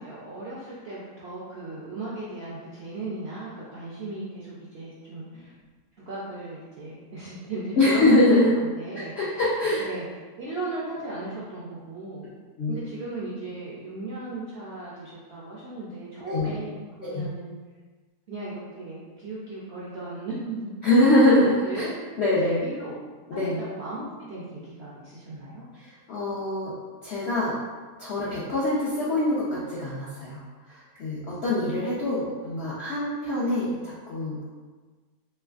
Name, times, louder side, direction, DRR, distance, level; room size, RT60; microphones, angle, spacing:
voice 1, 0.0-5.5 6.0-8.2 8.6-9.4 9.8-10.1 10.4-12.2 12.7-17.5 18.3-20.6 21.5-21.9 22.4-23.0 23.3-25.6, right 2 dB, 65° right, -7 dB, 0.6 m, -36 dB
voice 2, 7.8-8.5 8.9-9.8 12.6-12.7 16.3-16.5 17.0-17.3 20.8-21.9 22.2-22.6 23.3-23.6 25.8-26.7 27.0-27.5 28.0-30.4 30.7-34.4, left 1 dB, 65° left, -8 dB, 0.6 m, -23 dB
3.3 x 3.0 x 2.4 m, 1.4 s
omnidirectional pair, 1.8 m